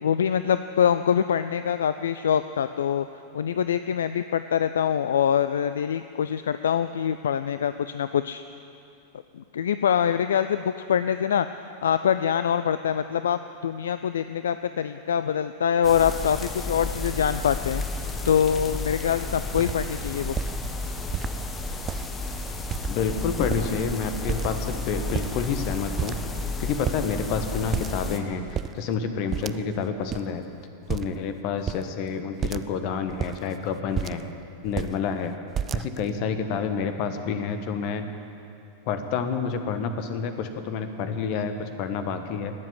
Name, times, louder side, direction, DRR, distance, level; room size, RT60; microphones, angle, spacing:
voice 1, 0.0-3.1 3.3-8.4 9.3-11.5 11.8-17.8 18.3-20.4, left 8 dB, 65° left, 12 dB, 0.4 m, -24 dB
sound 1, 15.8-28.2, left 2 dB, 20° left, 1.3 m, -32 dB
sound 2, 19.2-19.3 19.6-19.8 20.2-20.5 21.1-21.4 21.8-22.3 22.7-23.1 23.4-23.9 24.3-24.7 25.0-25.7 26.0-26.5 26.8-27.0 27.7-28.1 28.4-28.7 29.3-29.8 30.1-30.2 30.9-31.2 31.7-31.9 32.4-32.7 33.1-34.3 34.6-35.0 35.5-36.2, right 9 dB, 25° right, 0.4 m, -31 dB
voice 2, 22.9-30.4 30.9-34.3 34.6-35.4 35.7-38.1 38.9-42.5, left 6 dB, 45° left, 8 dB, 1.3 m, -29 dB
19.0 x 7.5 x 9.9 m, 2.8 s
figure-of-eight pair, 90°, 0 cm